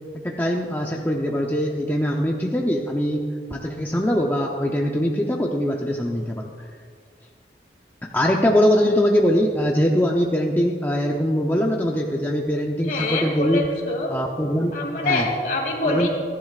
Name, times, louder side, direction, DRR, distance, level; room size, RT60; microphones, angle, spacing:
voice 1, 0.1-6.7 8.0-13.6 14.1-14.7 15.0-15.3 15.9-16.1, equal, 10° left, 0 dB, 0.6 m, -22 dB
voice 2, 12.9-14.1 14.7-16.1, left 2 dB, 50° left, 0 dB, 2.7 m, -25 dB
28.0 x 11.0 x 2.4 m, 2.1 s
head